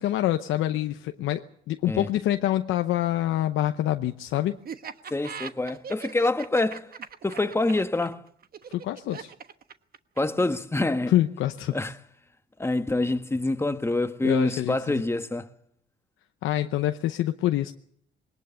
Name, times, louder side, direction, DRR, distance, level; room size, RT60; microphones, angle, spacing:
voice 1, 0.0-4.6 8.7-9.3 11.1-11.8 14.2-14.8 16.4-17.7, left 13 dB, 85° left, 0.8 m, -26 dB
Laughter, 4.7-10.4, right 7 dB, 50° right, 1.2 m, -40 dB
voice 2, 5.1-6.9 7.2-8.2 10.2-11.1 11.7-11.9 12.6-15.5, left 2 dB, 10° left, 1.2 m, -26 dB
21.5 x 19.0 x 6.9 m
cardioid pair, 90°, 20 cm